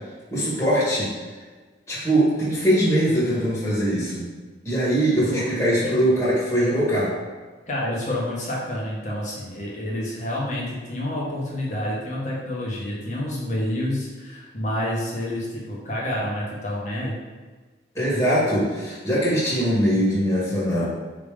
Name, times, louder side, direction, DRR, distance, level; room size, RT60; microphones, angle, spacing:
voice 1, 0.3-1.1 1.9-4.3 4.6-7.1 17.9-20.9, equal, 15° left, -9 dB, 1.9 m, -21 dB
voice 2, 7.7-17.2, left 1 dB, 40° left, -4 dB, 1.5 m, -28 dB
5.8 x 3.7 x 5.0 m, 1.4 s
head